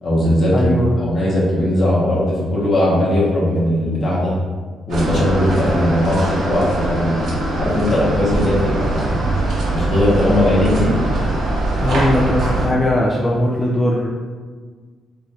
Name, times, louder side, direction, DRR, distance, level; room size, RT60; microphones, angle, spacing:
voice 1, 0.0-4.4 4.9-7.3 7.6-9.1 9.7-10.9, left 1 dB, 45° left, -6 dB, 0.8 m, -18 dB
voice 2, 0.5-0.9 11.8-14.1, left 1 dB, 20° left, -4 dB, 0.3 m, -19 dB
sound 1, 4.9-12.7, right 2 dB, 70° right, 1.1 m, -21 dB
3.1 x 2.5 x 2.7 m, 1.5 s
cardioid pair, 100°, 0 cm